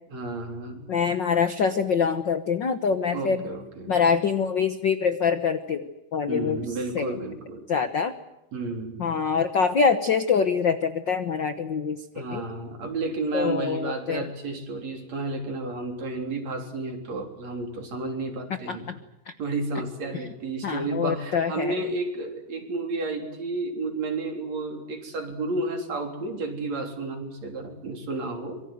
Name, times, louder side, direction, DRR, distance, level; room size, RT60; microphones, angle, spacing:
voice 1, 0.1-0.9 3.1-4.0 6.3-7.7 8.5-9.2 12.1-18.9 19.4-28.6, right 3 dB, 55° right, 4 dB, 4.7 m, -32 dB
voice 2, 0.9-3.4 3.9-6.6 6.9-7.2 7.7-8.1 9.0-12.0 12.3-12.4 13.3-14.3 18.7-19.0 19.3-19.4 20.1-20.2 20.6-21.7, left 6 dB, 70° left, 10 dB, 1.1 m, -25 dB
25.5 x 24.0 x 7.9 m, 0.92 s
omnidirectional pair, 3.8 m